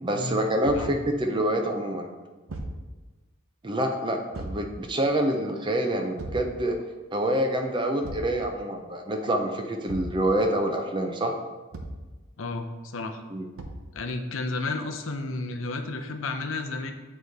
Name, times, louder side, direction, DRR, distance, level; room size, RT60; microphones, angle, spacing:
voice 1, 0.0-2.1 3.6-6.8 7.1-11.4 13.3-13.5, right 1 dB, 20° right, 3 dB, 0.5 m, -26 dB
Thump thud, 0.6-1.0 2.5-2.8 4.3-4.7 6.2-6.5 8.0-8.4 9.9-10.2 11.7-12.1 13.6-13.9, right 1 dB, 75° right, 0.7 m, -36 dB
voice 2, 12.4-13.2 13.9-16.9, left 3 dB, 65° left, 6 dB, 0.6 m, -32 dB
8.7 x 3.1 x 4.0 m, 1.2 s
head